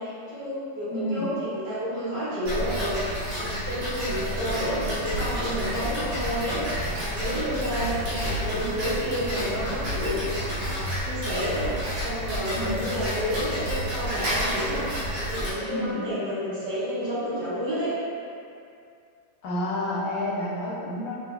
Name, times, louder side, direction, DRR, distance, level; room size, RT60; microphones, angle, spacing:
voice 1, 0.0-11.7 12.0-17.9, equal, 55° right, -10 dB, 1.6 m, -30 dB
voice 2, 0.9-1.2 12.6-12.9 15.7-16.1 19.4-21.1, left 1 dB, 75° left, -6 dB, 1.2 m, -29 dB
Tick-tock, 2.4-15.5, equal, 85° right, 2.0 m, -30 dB
Engine, 5.0-10.3, left 1 dB, 20° right, 1.4 m, -37 dB
5.0 x 3.2 x 2.3 m, 2.4 s
omnidirectional pair, 2.4 m